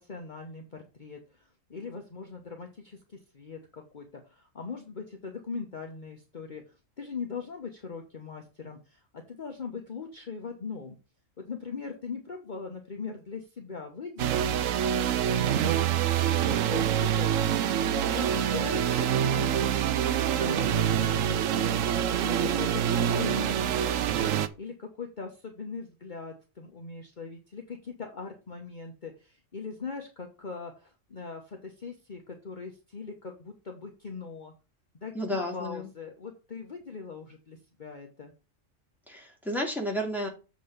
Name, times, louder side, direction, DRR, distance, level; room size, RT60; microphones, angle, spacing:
voice 1, 0.0-11.0 11.4-14.4 15.5-15.7 16.2-17.3 17.8-34.5 34.9-38.3, left 5 dB, 40° left, 2 dB, 1.2 m, -40 dB
sound 1, 14.2-24.5, right 9 dB, 85° right, 1.0 m, -26 dB
voice 2, 35.1-35.9 39.1-40.3, equal, ahead, 0 dB, 2.4 m, -32 dB
7.7 x 3.8 x 6.6 m, 0.31 s
omnidirectional pair, 1.3 m